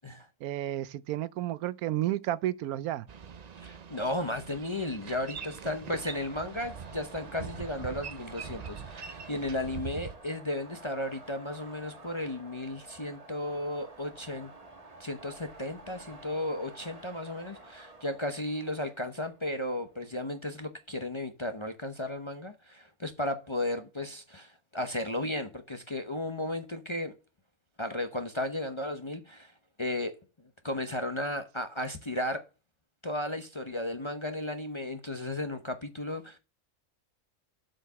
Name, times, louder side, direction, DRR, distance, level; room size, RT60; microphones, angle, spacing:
voice 1, 0.4-3.0, right 13 dB, 80° right, 1.0 m, -31 dB
Boat Water vehicle, 3.1-10.2, right 7 dB, 55° right, 0.4 m, -43 dB
voice 2, 3.6-14.5 15.0-27.1 27.8-29.5 29.8-30.1 30.6-32.4 33.0-36.4, left 1 dB, 25° left, 0.7 m, -34 dB
sound 1, 5.9-20.8, right 2 dB, 25° right, 1.4 m, -51 dB
7.7 x 4.7 x 5.6 m
omnidirectional pair, 1.5 m